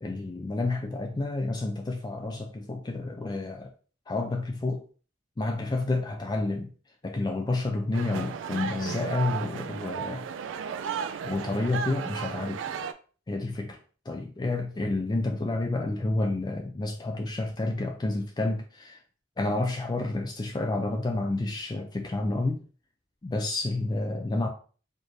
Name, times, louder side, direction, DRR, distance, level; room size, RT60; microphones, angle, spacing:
voice 1, 0.0-3.7 4.1-4.8 5.4-6.7 7.0-10.3 11.2-12.6 13.3-13.8 14.1-19.0 19.4-22.6 23.2-24.5, left 2 dB, 20° left, 3 dB, 0.3 m, -29 dB
sound 1, 7.9-12.9, right 7 dB, 75° right, 0.3 m, -34 dB
4.3 x 2.5 x 3.1 m, 0.39 s
head